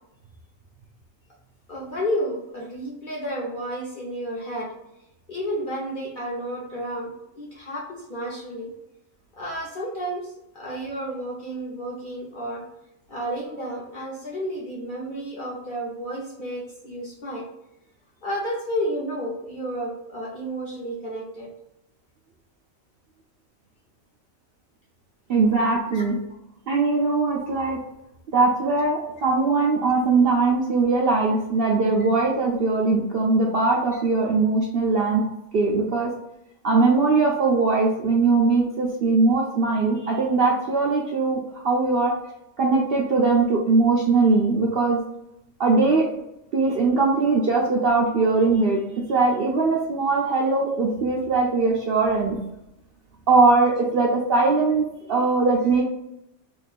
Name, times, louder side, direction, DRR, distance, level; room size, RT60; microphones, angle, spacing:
voice 1, 1.7-4.7 5.3-8.7 9.3-12.7 13.1-17.4 18.2-21.5 25.9-26.0 33.9-34.0 35.2-35.3 39.4-39.5 51.9-52.0, equal, 50° left, -3 dB, 0.7 m, -31 dB
voice 2, 25.3-26.2 26.7-27.8 28.3-35.2 35.5-36.1 36.6-42.1 42.6-45.0 45.6-46.0 46.5-52.4 53.3-55.8, right 3 dB, 65° right, -2 dB, 0.6 m, -21 dB
2.9 x 2.6 x 4.0 m, 0.84 s
omnidirectional pair, 1.5 m